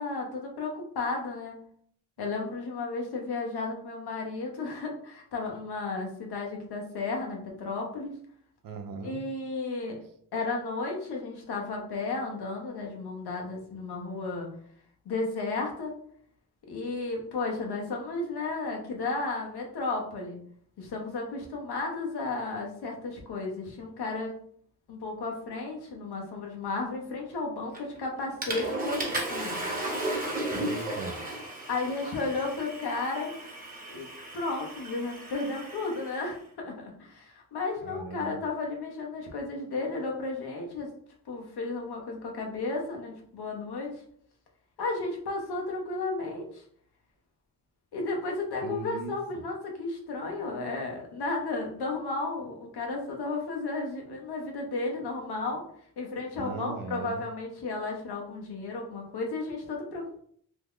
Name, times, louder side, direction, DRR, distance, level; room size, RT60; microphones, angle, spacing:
voice 1, 0.0-1.6 2.2-8.1 9.0-10.0 10.3-14.5 15.0-16.0 16.7-20.4 20.8-24.3 24.9-29.6 31.7-33.3 33.9-34.1 34.3-40.9 41.3-43.9 44.8-46.6 47.9-55.6 56.0-60.2, left 3 dB, 80° left, 1 dB, 0.9 m, -33 dB
voice 2, 8.6-9.2 30.5-31.2 37.8-38.4 48.6-49.2 56.4-57.2, right 4 dB, 60° right, 7 dB, 0.6 m, -38 dB
Water / Toilet flush, 27.7-28.0 28.4-36.3, right 1 dB, 20° right, 1.1 m, -35 dB
2.9 x 2.3 x 3.6 m, 0.62 s
cardioid pair, 60°, 38 cm